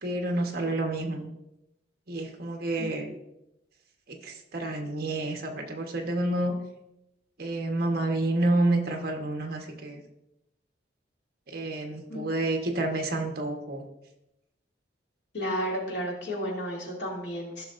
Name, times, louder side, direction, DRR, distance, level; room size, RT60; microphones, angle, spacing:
voice 1, 0.0-1.3 2.1-3.2 4.1-6.6 7.4-10.0 11.5-13.9, right 2 dB, 55° right, 3 dB, 1.2 m, -29 dB
voice 2, 15.3-17.6, equal, 70° left, -3 dB, 2.7 m, -32 dB
15.0 x 6.2 x 2.6 m, 0.87 s
head